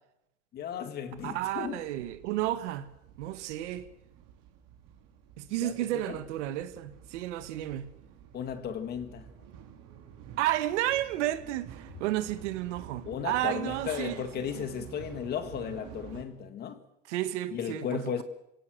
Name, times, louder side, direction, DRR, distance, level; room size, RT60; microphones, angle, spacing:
voice 1, 0.5-1.8 5.5-5.7 6.1-6.2 8.3-9.3 13.0-16.8 17.5-18.2, left 8 dB, 25° left, 1.7 m, -35 dB
sound 1, 1.1-16.2, right 9 dB, 45° right, 3.7 m, -50 dB
voice 2, 1.2-2.9 3.2-3.8 5.4-7.9 10.4-14.2 14.5-14.8 17.1-18.2, right 14 dB, 70° right, 1.9 m, -32 dB
26.5 x 17.0 x 7.6 m
supercardioid pair, 165°, 36 cm